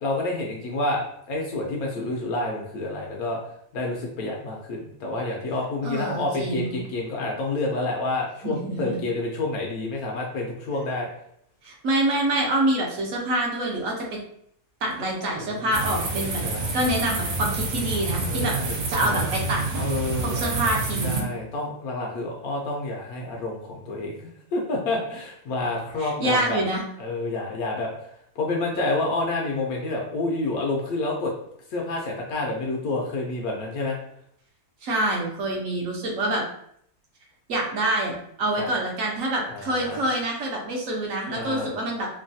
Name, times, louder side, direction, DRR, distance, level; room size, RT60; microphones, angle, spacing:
voice 1, 0.0-3.4 3.7-11.1 15.4-15.7 16.4-16.7 18.2-19.3 19.8-20.4 21.0-26.6 27.0-27.9 28.4-31.3 31.7-34.0 38.6-38.7 39.5-40.0 41.3-41.7, left 2 dB, 75° left, -1 dB, 1.1 m, -29 dB
voice 2, 5.8-6.8 8.4-9.0 11.6-14.1 14.8-16.4 16.7-19.9 20.2-21.3 26.0-26.8 34.8-36.4 37.5-42.1, right 1 dB, 65° right, -1 dB, 1.0 m, -26 dB
sound 1, 15.7-21.2, right 2 dB, 85° right, 1.2 m, -28 dB
3.1 x 2.2 x 2.6 m, 0.69 s
omnidirectional pair, 1.6 m